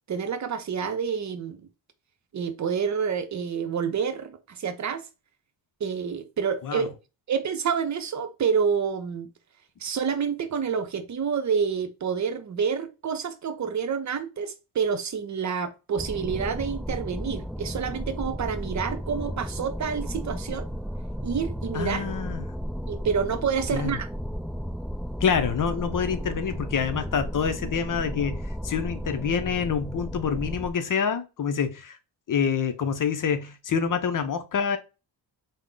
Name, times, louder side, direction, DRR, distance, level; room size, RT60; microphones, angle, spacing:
voice 1, 0.1-1.7 2.3-5.1 5.8-6.9 7.3-9.3 9.8-20.7 21.2-22.1 22.9-24.1, right 6 dB, 40° right, 0.7 m, -28 dB
sound 1, 16.0-30.7, equal, ahead, 0.3 m, -34 dB
voice 2, 21.7-22.5 23.7-23.9 25.2-32.0 32.3-34.8, left 7 dB, 50° left, 0.6 m, -27 dB
3.5 x 2.1 x 3.7 m
cardioid pair, 85°, 42 cm